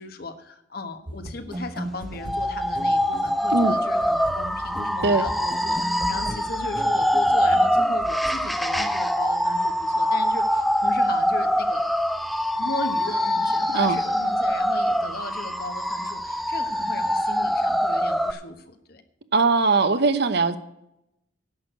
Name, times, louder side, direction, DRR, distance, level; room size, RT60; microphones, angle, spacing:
voice 1, 0.0-11.8 12.6-19.0, left 2 dB, 55° left, 8 dB, 1.3 m, -37 dB
sound 1, 1.1-8.9, right 1 dB, 25° right, 0.9 m, -37 dB
sound 2, 2.2-18.3, equal, ahead, 0.5 m, -24 dB
voice 2, 19.3-20.6, right 3 dB, 60° right, 11 dB, 0.9 m, -20 dB
11.0 x 6.5 x 9.0 m, 0.80 s
head